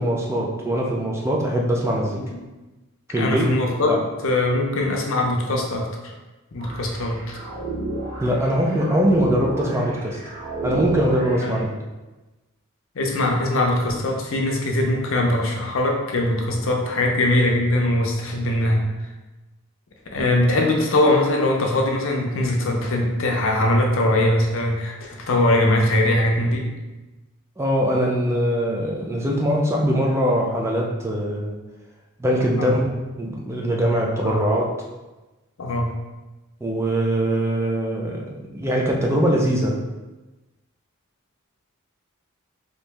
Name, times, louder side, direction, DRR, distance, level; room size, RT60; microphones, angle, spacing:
voice 1, 0.0-2.2 3.1-3.5 3.9-4.0 8.2-10.2 10.6-11.7 27.6-31.5 32.2-32.9 33.2-34.9 36.6-39.8, equal, 10° right, -2 dB, 0.3 m, -22 dB
voice 2, 3.2-4.0 4.2-5.9 6.5-7.4 11.4-11.5 13.0-18.9 20.1-26.6 32.6-32.8 34.2-34.4 35.6-35.9, left 1 dB, 65° left, 1 dB, 0.6 m, -21 dB
sound 1, 6.6-11.6, right 2 dB, 55° right, 0.9 m, -32 dB
3.0 x 2.7 x 3.3 m, 1.1 s
head